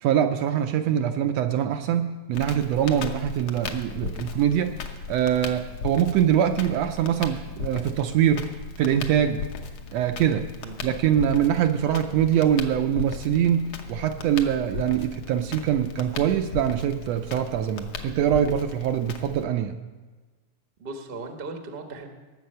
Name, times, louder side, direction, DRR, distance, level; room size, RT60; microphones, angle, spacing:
voice 1, 0.0-8.5 8.8-9.4 9.9-10.5 10.8-19.8, right 10 dB, 75° right, 7 dB, 1.6 m, -23 dB
Crackle, 2.3-19.4, left 5 dB, 65° left, 1.9 m, -37 dB
voice 2, 20.8-22.1, right 3 dB, 45° right, 4 dB, 0.7 m, -37 dB
19.0 x 7.5 x 5.4 m, 1.3 s
omnidirectional pair, 3.3 m